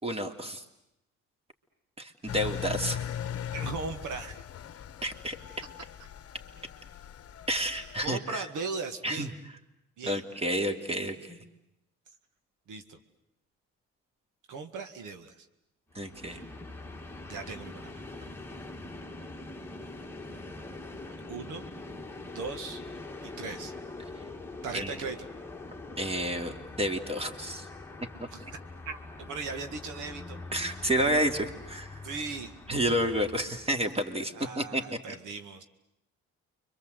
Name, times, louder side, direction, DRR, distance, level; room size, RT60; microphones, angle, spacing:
voice 1, 0.0-0.6 2.0-3.0 5.0-5.4 7.5-8.4 9.0-9.3 10.0-11.4 15.9-16.4 24.7-25.0 26.0-27.7 28.2-28.3 30.5-32.0 32.7-34.8, right 1 dB, 20° right, 5 dB, 2.7 m, -30 dB
Engine, 2.3-8.1, left 9 dB, 50° left, 1.0 m, -39 dB
voice 2, 3.5-4.4 8.0-9.3 10.0-10.2 12.7-13.0 14.5-15.5 16.3-16.4 17.3-17.9 21.3-21.7 22.3-22.8 23.2-23.7 24.6-25.3 28.3-28.6 28.9-30.4 32.0-32.5 34.3-35.6, right 4 dB, 80° right, 7 dB, 2.0 m, -38 dB
Train, 15.9-34.0, left 2 dB, 10° left, 1.9 m, -44 dB
29.5 x 24.5 x 8.1 m, 0.85 s
cardioid pair, 90°, 30 cm